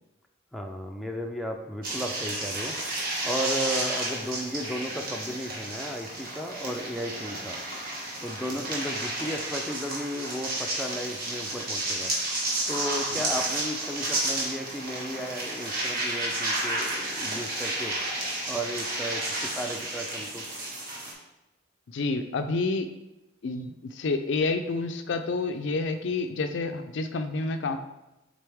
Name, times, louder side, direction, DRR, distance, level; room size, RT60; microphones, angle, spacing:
voice 1, 0.5-2.8 3.2-7.6 8.2-12.1 12.7-18.0 18.5-20.5, equal, ahead, 2 dB, 0.5 m, -34 dB
sound 1, 1.8-21.1, right 1 dB, 45° right, 1.6 m, -31 dB
voice 2, 21.9-22.9 23.4-27.8, left 3 dB, 60° left, 8 dB, 0.4 m, -29 dB
7.7 x 3.9 x 3.5 m, 0.95 s
head